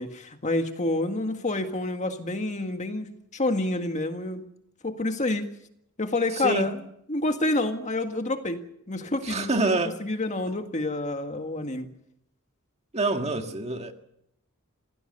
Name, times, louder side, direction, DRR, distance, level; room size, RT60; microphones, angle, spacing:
voice 1, 0.0-4.4 4.8-5.5 6.0-6.8 7.1-11.9, left 2 dB, 35° left, 1.8 m, -28 dB
voice 2, 9.2-9.9 12.9-13.9, right 2 dB, 30° right, 1.7 m, -26 dB
26.5 x 17.5 x 6.8 m
head